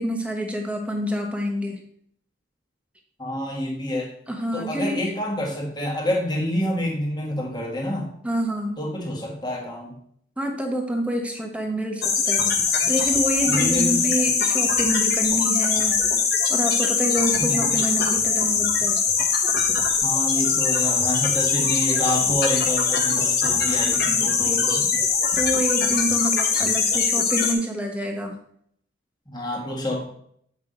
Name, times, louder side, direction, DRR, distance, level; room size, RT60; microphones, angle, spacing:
voice 1, 0.0-1.8 4.3-5.0 8.2-8.8 10.4-12.6 12.9-16.0 16.5-19.0 23.7-24.9 25.4-28.4, right 1 dB, 5° right, 2 dB, 1.0 m, -27 dB
voice 2, 3.2-4.1 4.5-8.1 8.8-10.0 13.5-14.0 17.4-17.8 20.0-24.8 29.3-30.0, left 1 dB, 20° left, -1 dB, 1.6 m, -28 dB
sound 1, 12.0-27.5, left 5 dB, 55° left, 1.3 m, -22 dB
8.0 x 5.6 x 3.8 m, 0.67 s
head